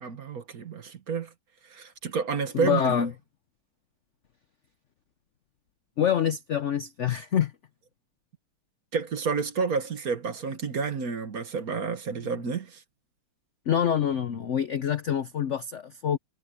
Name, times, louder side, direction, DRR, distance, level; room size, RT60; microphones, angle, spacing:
voice 1, 0.0-1.3 1.7-3.0 8.9-12.8, right 5 dB, 50° right, 1.7 m, -30 dB
voice 2, 2.5-3.1 6.0-7.5 13.7-16.2, left 9 dB, 80° left, 0.6 m, -26 dB
omnidirectional pair, 2.2 m